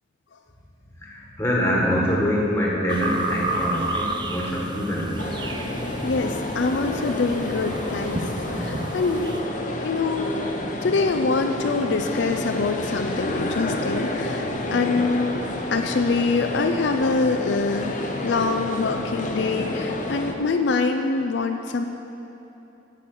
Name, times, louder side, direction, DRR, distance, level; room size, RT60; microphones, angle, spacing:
voice 1, 1.0-5.3, equal, 15° left, -4 dB, 1.5 m, -24 dB
sound 1, 2.9-9.4, right 2 dB, 25° right, 0.5 m, -31 dB
sound 2, 5.2-20.3, left 1 dB, 40° left, 0.8 m, -29 dB
voice 2, 6.0-8.3 8.6-9.3 9.8-10.3 10.8-15.4 15.7-17.9 18.2-21.8, left 4 dB, 70° left, 5 dB, 0.4 m, -24 dB
8.4 x 6.3 x 7.8 m, 3.0 s
head